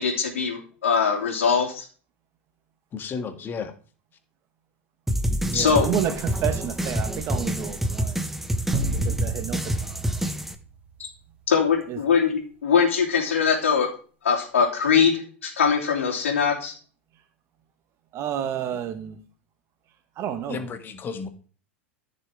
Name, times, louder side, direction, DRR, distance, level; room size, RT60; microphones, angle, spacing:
voice 1, 0.0-1.8 5.5-5.9 11.5-13.9 14.2-16.7, left 6 dB, 75° left, 3.2 m, -22 dB
voice 2, 2.9-3.7 20.5-21.3, left 5 dB, 30° left, 1.8 m, -33 dB
sound 1, 5.1-10.5, right 1 dB, 5° right, 1.2 m, -27 dB
voice 3, 5.5-8.3 9.0-10.0 11.9-12.0 18.1-19.2 20.2-20.7, right 10 dB, 40° right, 1.7 m, -30 dB
sound 2, 8.7-11.3, right 2 dB, 20° right, 3.2 m, -31 dB
14.5 x 6.8 x 3.7 m
hypercardioid pair, 90°, 7 cm